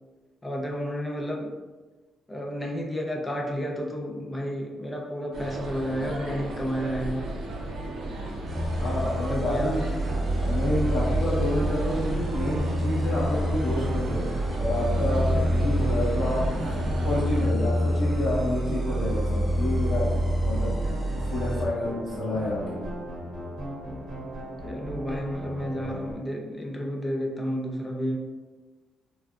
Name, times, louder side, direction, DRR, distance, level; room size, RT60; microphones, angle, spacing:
voice 1, 0.4-1.5 2.3-7.3 9.3-9.8 24.6-28.2, equal, 15° left, -1 dB, 0.6 m, -31 dB
sound 1, 5.3-17.5, right 2 dB, 75° right, 0.6 m, -35 dB
sound 2, 8.5-21.6, equal, 20° right, 0.9 m, -27 dB
voice 2, 8.7-14.2 14.6-20.8 21.2-22.9, left 1 dB, 75° left, -11 dB, 0.9 m, -29 dB
sound 3, 10.1-26.1, right 1 dB, 50° right, 0.8 m, -38 dB
3.3 x 2.2 x 2.4 m, 1.3 s
cardioid pair, 90°, 0 cm